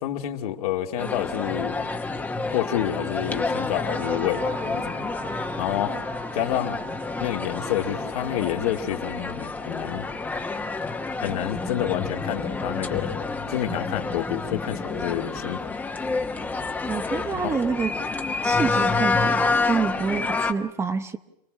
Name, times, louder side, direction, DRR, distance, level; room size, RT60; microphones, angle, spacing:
voice 1, 0.0-1.8 2.5-5.2 5.6-5.9 6.3-6.8 7.2-10.1 11.2-15.7 17.3-17.6, left 11 dB, 70° left, 3 dB, 2.4 m, -29 dB
sound 1, 1.0-20.5, left 3 dB, 10° left, 1.0 m, -28 dB
sound 2, 3.9-13.9, right 8 dB, 85° right, 4.4 m, -44 dB
voice 2, 16.9-17.9 18.4-21.2, right 5 dB, 15° right, 10 dB, 0.8 m, -27 dB
28.0 x 19.5 x 6.2 m, 0.83 s
supercardioid pair, 140°, 20 cm